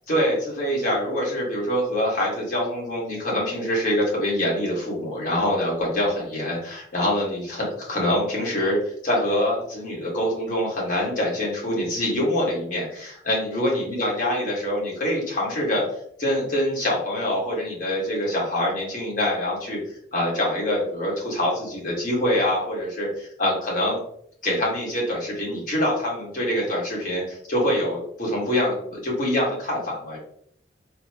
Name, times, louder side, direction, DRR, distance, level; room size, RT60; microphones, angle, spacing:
voice 1, 0.1-15.9 16.2-19.8 20.1-24.0 24.4-30.2, left 1 dB, 45° left, -4 dB, 1.4 m, -25 dB
4.2 x 2.0 x 2.8 m, 0.65 s
head